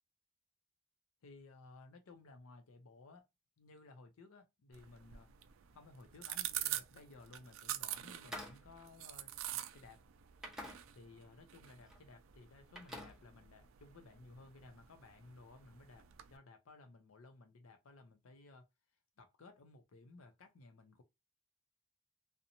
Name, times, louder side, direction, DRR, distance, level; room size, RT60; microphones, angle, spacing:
voice 1, 1.2-3.3 3.6-5.3 5.7-10.0 10.7-18.7 19.2-21.0, left 3 dB, 85° left, 0.5 m, -58 dB
sound 1, 4.7-16.4, right 13 dB, 70° right, 0.3 m, -46 dB
sound 2, 8.2-9.9 10.4-11.3 11.6-12.0 12.3-13.9, equal, 5° right, 0.6 m, -51 dB
2.6 x 2.0 x 2.8 m
head